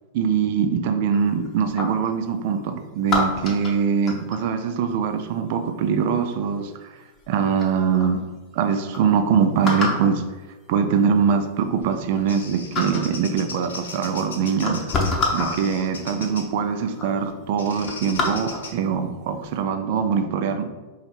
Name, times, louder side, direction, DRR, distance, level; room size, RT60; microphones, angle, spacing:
voice 1, 0.1-6.9 7.3-8.2 8.5-10.2 10.7-14.8 15.3-20.7, right 6 dB, 50° right, 7 dB, 0.5 m, -23 dB
sound 1, 1.1-2.1 3.1-4.5 6.2-6.6 7.2-7.3 7.6-8.1 8.6-8.7 8.9-9.0 9.6-10.1 11.1-11.2 11.6-12.4 12.7-13.1 14.0-14.1 14.5-15.6 16.4-16.5 16.9-17.1 17.5-18.7 19.2-19.5, left 2 dB, 30° left, 0.9 m, -27 dB
Bird vocalization bird call bird song, 11.8-16.6 17.6-18.7, left 4 dB, 65° left, 0.7 m, -38 dB
4.3 x 2.9 x 4.2 m, 1.2 s
figure-of-eight pair, 90°, 0 cm